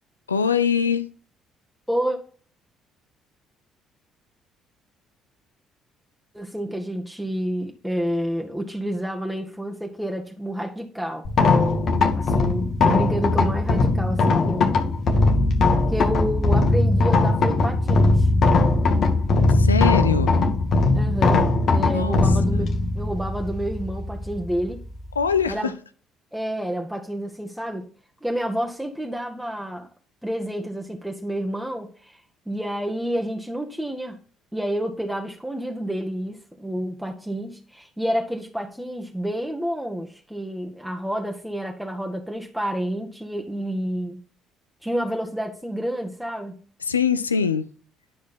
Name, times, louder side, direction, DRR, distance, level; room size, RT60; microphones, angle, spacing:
voice 1, 0.3-1.0 19.5-20.4 21.9-22.2 25.2-25.7 46.9-47.7, left 6 dB, 90° left, 0.4 m, -22 dB
voice 2, 1.9-2.2 6.3-11.3 12.1-14.8 15.9-18.3 20.9-24.8 25.5-25.7 26.3-27.9 28.2-29.9 30.2-32.2 32.5-34.2 34.5-44.2 44.8-46.6, equal, 5° right, 1.3 m, -29 dB
sound 1, 11.2-25.5, left 3 dB, 50° left, 1.3 m, -20 dB
10.5 x 5.0 x 4.1 m
figure-of-eight pair, 50°, 0 cm